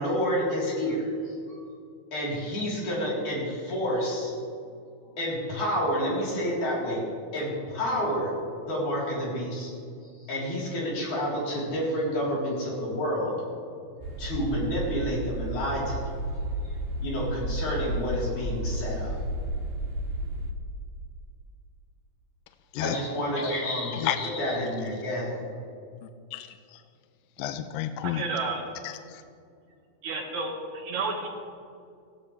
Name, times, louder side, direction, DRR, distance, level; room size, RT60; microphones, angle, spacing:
voice 1, 0.0-1.6 2.1-4.3 5.2-7.0 7.3-8.3 8.7-9.7 10.2-13.4 14.2-16.1 16.4-16.5 17.0-19.1 22.8-25.3, equal, 55° left, -6 dB, 5.2 m, -29 dB
sound 1, 14.0-20.5, right 1 dB, 85° right, 3.2 m, -32 dB
voice 2, 26.3-26.8 27.4-28.2 28.8-29.2, left 13 dB, 80° left, 9 dB, 2.3 m, -31 dB
voice 3, 28.0-28.6 30.0-30.5 30.8-31.3, right 4 dB, 55° right, 0 dB, 2.9 m, -30 dB
17.5 x 17.0 x 3.4 m, 2.3 s
omnidirectional pair, 4.2 m